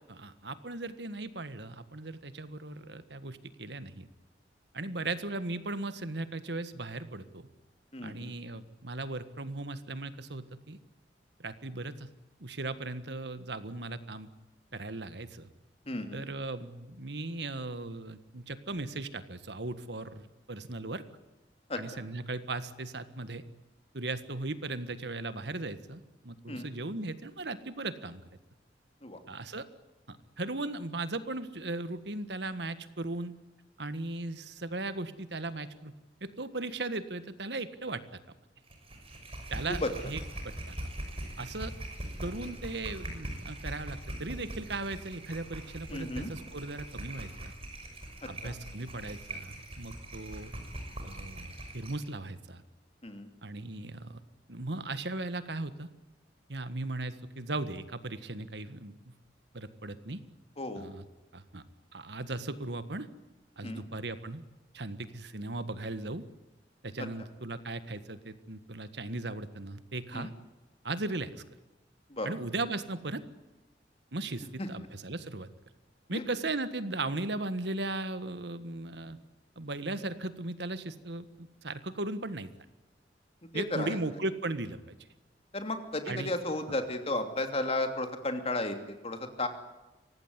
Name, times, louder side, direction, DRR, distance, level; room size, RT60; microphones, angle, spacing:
voice 1, 0.1-4.1 4.7-7.5 8.0-10.8 11.4-12.1 12.4-14.3 14.7-15.5 16.1-21.0 21.8-23.4 23.9-28.2 29.3-29.7 30.1-33.4 33.8-35.9 36.2-38.0 39.5-40.7 41.4-41.7 42.2-47.5 48.3-50.5 51.0-52.6 53.4-54.2 54.5-55.9 56.5-59.1 59.5-60.2 60.7-61.0 61.3-61.6 61.9-63.1 63.6-64.4 64.7-66.2 66.8-70.3 70.8-71.3 72.2-73.2 74.1-75.5 76.1-79.2 79.5-82.5 83.5-85.0 86.1-86.3, right 2 dB, 65° right, 12 dB, 1.6 m, -37 dB
voice 2, 7.9-8.3 15.9-16.3 21.7-22.0 26.5-26.7 29.0-29.2 39.7-39.9 42.4-42.5 45.9-46.3 48.4-48.5 53.0-53.3 60.6-60.9 63.6-63.8 67.0-67.1 70.1-70.3 72.1-72.3 74.6-74.7 76.1-76.2 83.5-84.0 85.5-89.5, left 2 dB, 35° left, 7 dB, 2.9 m, -34 dB
sound 1, 38.7-52.1, right 1 dB, 35° right, 6.3 m, -42 dB
25.0 x 18.0 x 9.7 m, 1.1 s
head